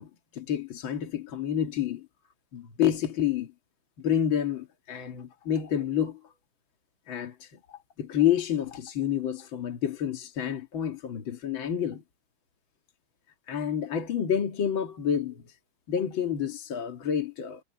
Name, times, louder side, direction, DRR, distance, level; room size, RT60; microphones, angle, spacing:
voice 1, 0.0-2.1 2.5-3.5 4.0-6.2 7.1-12.0 13.5-15.5 15.9-17.6, left 9 dB, 70° left, 2.7 m, -29 dB
omnidirectional pair, 2.2 m